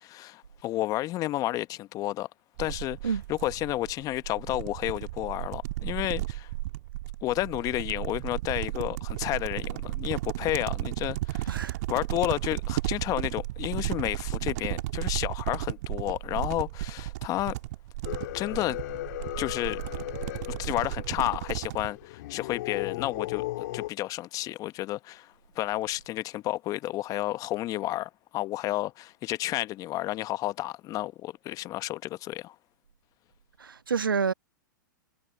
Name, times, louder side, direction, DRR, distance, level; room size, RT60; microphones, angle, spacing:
voice 1, 0.0-2.3 2.6-6.5 7.2-17.6 18.3-18.8 19.4-19.8 20.6-23.5 23.7-32.5, left 16 dB, 30° left, 1.1 m, -31 dB
sound 1, 2.6-21.9, right 17 dB, 55° right, 2.8 m, -34 dB
sound 2, 18.0-23.9, left 17 dB, 55° left, 2.9 m, -37 dB
voice 2, 33.6-34.3, right 6 dB, 85° right, 1.3 m, -28 dB
hypercardioid pair, 110°, 11 cm